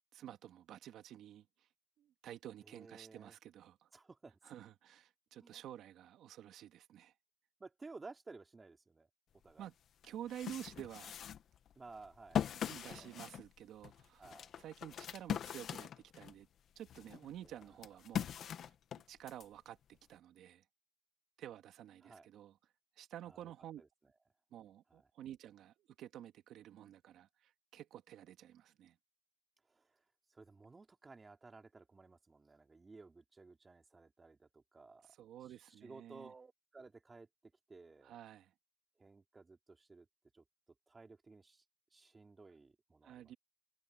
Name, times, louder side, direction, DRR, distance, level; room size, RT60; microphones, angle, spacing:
voice 1, 0.1-1.7 2.0-3.9 4.4-7.1 9.6-9.7 10.0-11.2 12.5-14.3 14.6-16.5 16.8-18.3 19.1-20.6 21.4-22.6 23.0-23.8 24.5-29.0 35.0-36.3 38.0-38.5 43.0-43.4, right 11 dB, 80° right, 2.0 m, -51 dB
voice 2, 2.6-3.3 3.9-4.4 5.4-5.6 7.6-9.1 9.4-9.7 11.8-13.3 14.2-14.5 17.4-17.8 22.0-22.3 23.3-23.5 23.8-23.9 24.9-25.1 29.7-30.0 30.3-35.1 35.5-38.2 39.0-40.1 40.3-40.4 40.9-41.6 41.9-43.3, right 3 dB, 25° right, 2.8 m, -56 dB
sound 1, 9.5-9.6 10.0-16.4 16.8-19.5, left 9 dB, 65° left, 1.4 m, -41 dB
cardioid pair, 90°, 0 cm